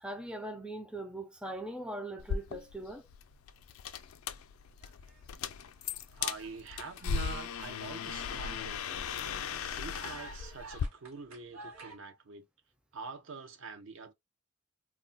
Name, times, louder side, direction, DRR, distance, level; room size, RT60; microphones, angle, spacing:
voice 1, 0.0-3.1, right 1 dB, 5° right, 0.4 m, -40 dB
sound 1, 2.2-10.9, left 7 dB, 90° left, 0.3 m, -38 dB
sound 2, 4.8-5.6 5.8-12.0, right 3 dB, 85° right, 1.2 m, -52 dB
voice 2, 6.1-12.5 12.9-14.1, right 4 dB, 65° right, 0.6 m, -46 dB
2.3 x 2.1 x 3.7 m
head